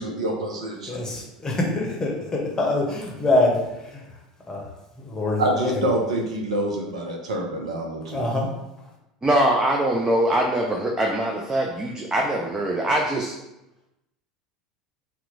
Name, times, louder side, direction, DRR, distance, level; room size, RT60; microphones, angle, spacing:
voice 1, 0.0-1.0 5.4-8.2, right 1 dB, 75° right, 0 dB, 0.6 m, -26 dB
voice 2, 0.9-4.0 4.5-4.7 5.0-5.9 8.1-8.6, left 2 dB, 20° left, -1 dB, 0.9 m, -25 dB
voice 3, 9.2-13.4, right 1 dB, 15° right, 0 dB, 0.4 m, -22 dB
2.8 x 2.2 x 3.9 m, 0.92 s
figure-of-eight pair, 75°, 3 cm